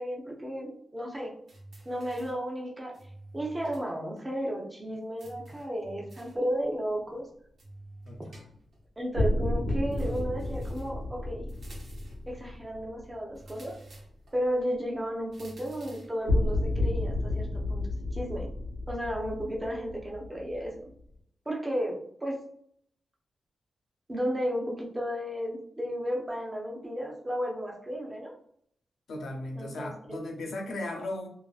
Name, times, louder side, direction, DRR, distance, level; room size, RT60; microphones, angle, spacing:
voice 1, 0.0-1.4 1.9-3.0 3.3-7.3 9.0-11.5 12.3-13.8 14.3-17.9 18.1-18.5 18.9-20.9 21.5-22.5 24.1-28.4 29.6-30.2, equal, 15° right, -1 dB, 0.5 m, -33 dB
sound 1, 1.5-2.5 2.9-3.9 4.2-4.3 5.2-6.5 7.6-8.8 9.9-11.0 11.5-12.3 13.3-14.4 15.3-16.2, right 2 dB, 55° right, 0.7 m, -49 dB
voice 2, 8.1-8.4 29.1-31.3, left 1 dB, 85° left, 0 dB, 0.6 m, -36 dB
sound 2, 9.1-13.4 16.3-20.9, left 1 dB, 85° right, 1.1 m, -31 dB
2.4 x 2.4 x 2.3 m, 0.66 s
wide cardioid pair, 155°, 0 cm